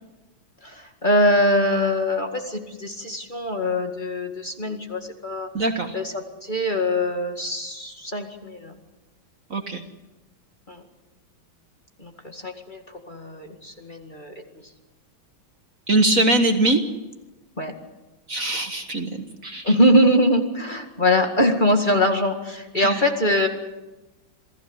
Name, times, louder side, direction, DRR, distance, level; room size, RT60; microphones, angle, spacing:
voice 1, 0.6-5.5 5.9-8.8 10.7-10.8 12.0-14.3 17.6-17.7 19.6-23.5, left 1 dB, 25° left, 4 dB, 2.1 m, -22 dB
voice 2, 5.5-6.0 9.5-9.8 15.9-16.8 18.3-19.7 22.7-23.1, right 2 dB, 45° right, 6 dB, 1.8 m, -22 dB
28.0 x 17.0 x 8.2 m, 1.1 s
omnidirectional pair, 2.2 m